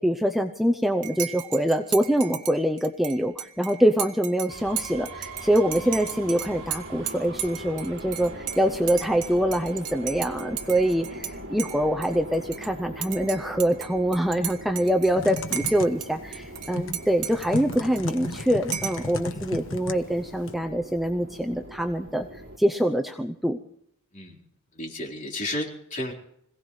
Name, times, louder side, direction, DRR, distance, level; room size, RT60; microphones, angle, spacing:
voice 1, 0.0-23.6, equal, ahead, 4 dB, 0.6 m, -24 dB
Dishes pots and pans / Cutlery silverware / Chink clink, 1.0-11.3 11.6-12.7 13.0-16.1 16.3-18.3 18.7-19.1, right 10 dB, 80° right, 1.3 m, -35 dB
sound 1, 4.5-22.6, right 1 dB, 60° right, 3.8 m, -41 dB
Typing, 15.2-20.6, left 2 dB, 60° left, 1.2 m, -36 dB
voice 2, 24.7-26.1, left 1 dB, 35° left, -1 dB, 3.9 m, -33 dB
26.0 x 17.0 x 3.2 m, 0.74 s
head